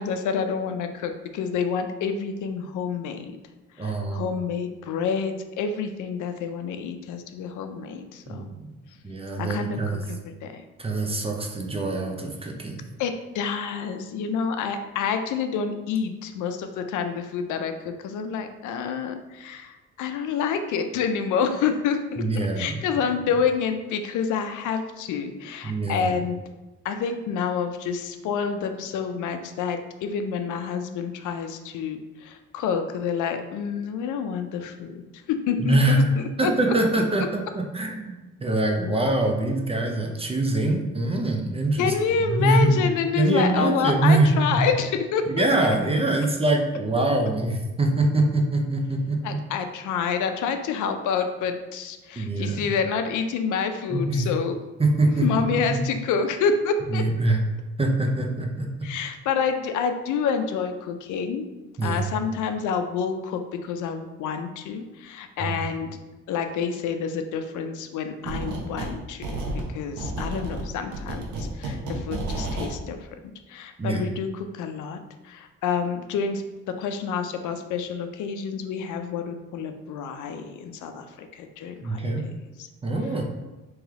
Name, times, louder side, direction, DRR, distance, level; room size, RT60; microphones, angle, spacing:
voice 1, 0.0-3.3 3.8-8.4 9.4-9.8 10.1-10.6 13.0-17.7 18.0-22.2 22.6-26.4 26.8-35.0 35.3-36.5 41.8-45.4 49.2-54.6 55.2-57.0 58.8-61.4 61.8-65.9 66.3-69.4 69.7-73.0 73.5-75.0 75.2-82.1, left 6 dB, 80° left, 7 dB, 0.5 m, -28 dB
voice 2, 3.8-4.4 8.3-8.7 9.0-10.1 10.8-12.8 22.2-22.8 23.2-23.3 25.6-26.1 35.6-36.0 36.4-41.9 42.3-42.8 43.2-44.6 45.3-49.4 52.2-52.7 53.9-54.3 54.8-55.8 56.9-57.4 57.8-58.7 61.8-62.0 65.4-65.6 73.8-74.1 81.8-82.3 82.8-83.2, right 2 dB, 20° right, 2 dB, 0.6 m, -24 dB
sound 1, 68.2-68.9 69.2-72.7, right 2 dB, 75° right, 0.8 m, -31 dB
3.2 x 3.0 x 3.6 m, 1.1 s
cardioid pair, 90°, 30 cm